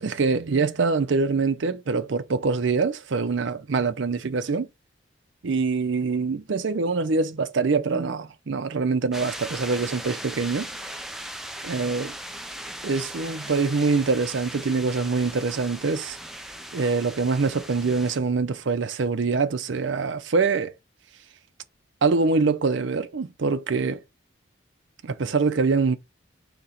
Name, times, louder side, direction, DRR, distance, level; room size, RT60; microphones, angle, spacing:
voice 1, 0.0-4.7 5.4-10.7 11.6-12.1 12.8-16.2 16.7-20.7 22.0-24.0 25.0-25.9, right 4 dB, 65° right, 0.5 m, -24 dB
sound 1, 9.1-18.2, right 1 dB, ahead, 0.3 m, -38 dB
3.9 x 2.9 x 4.2 m
head